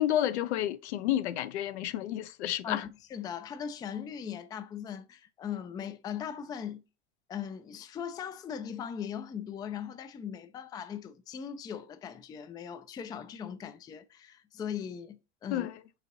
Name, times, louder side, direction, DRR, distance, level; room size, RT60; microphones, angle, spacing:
voice 1, 0.0-2.8 15.5-15.8, left 12 dB, 70° left, 0.5 m, -30 dB
voice 2, 2.6-6.8 7.3-15.7, left 8 dB, 10° left, 0.3 m, -39 dB
4.4 x 4.1 x 2.6 m
hypercardioid pair, 80°, 35 cm